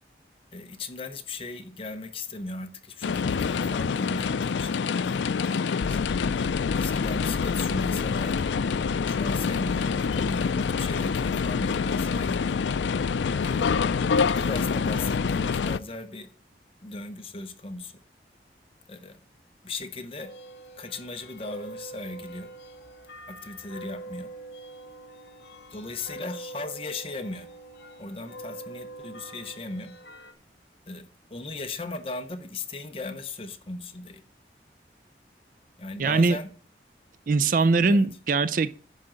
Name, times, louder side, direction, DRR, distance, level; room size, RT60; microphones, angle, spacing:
voice 1, 0.5-8.5 9.1-12.6 13.4-13.8 14.1-16.3 16.8-17.9 18.9-19.2 19.6-20.3 20.8-22.5 23.3-24.3 25.7-27.5 28.0-30.0 30.9-34.2 35.8-36.5 37.6-38.1, left 3 dB, 30° left, 0.9 m, -38 dB
sound 1, 3.0-15.8, left 5 dB, 90° left, 0.4 m, -26 dB
sound 2, 20.2-30.3, right 2 dB, 70° left, 1.6 m, -44 dB
voice 2, 36.0-36.4 37.3-38.8, right 3 dB, 50° right, 0.4 m, -22 dB
10.5 x 3.9 x 7.5 m
head